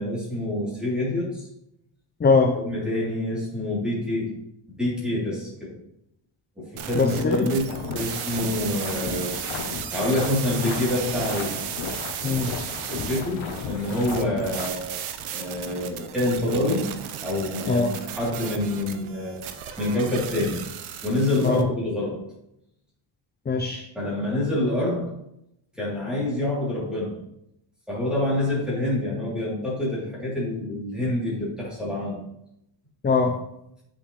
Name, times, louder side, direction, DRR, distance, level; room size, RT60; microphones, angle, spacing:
voice 1, 0.0-1.5 2.5-4.3 4.8-5.7 6.6-11.6 12.9-20.7 21.0-22.3 23.9-25.2 25.8-27.2 27.9-32.3, left 1 dB, ahead, -7 dB, 3.1 m, -27 dB
voice 2, 2.2-2.5 6.9-7.4 12.2-12.5 17.7-17.9 21.4-21.6 23.5-23.8 33.0-33.3, left 4 dB, 20° left, 4 dB, 0.4 m, -21 dB
sound 1, 6.8-21.6, right 9 dB, 90° right, 0.9 m, -35 dB
sound 2, 7.7-14.7, left 5 dB, 70° left, 1.0 m, -34 dB
8.5 x 6.3 x 3.2 m, 0.79 s
wide cardioid pair, 175°, 49 cm